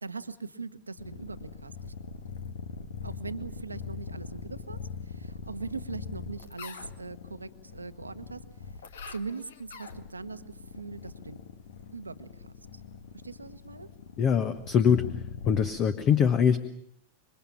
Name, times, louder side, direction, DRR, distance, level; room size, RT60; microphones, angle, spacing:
voice 1, 0.0-1.9 3.0-8.4 9.1-11.4 11.9-12.5 12.7-12.8 13.2-13.9, right 4 dB, 80° right, 11 dB, 1.3 m, -41 dB
sound 1, 1.0-15.7, left 5 dB, 65° left, 1.7 m, -42 dB
voice 2, 14.2-15.0 15.5-16.6, left 7 dB, 35° left, 11 dB, 1.3 m, -23 dB
27.0 x 24.0 x 7.3 m, 0.72 s
figure-of-eight pair, 90°, 0 cm